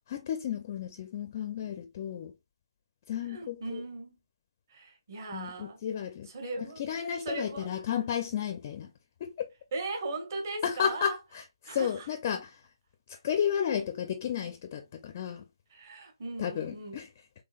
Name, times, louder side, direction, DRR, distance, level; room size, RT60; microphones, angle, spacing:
voice 1, 0.1-2.3 3.1-3.8 5.3-6.3 6.9-8.9 9.2-9.5 10.6-11.4 11.7-12.5 13.2-15.4 16.4-17.1, left 8 dB, 25° left, 0.4 m, -32 dB
voice 2, 3.2-4.2 4.7-5.8 6.2-6.8 7.2-7.7 9.7-11.2 11.6-12.1 15.7-17.0, right 2 dB, 35° right, 1.0 m, -38 dB
3.7 x 3.2 x 2.4 m
figure-of-eight pair, 160°, 3 cm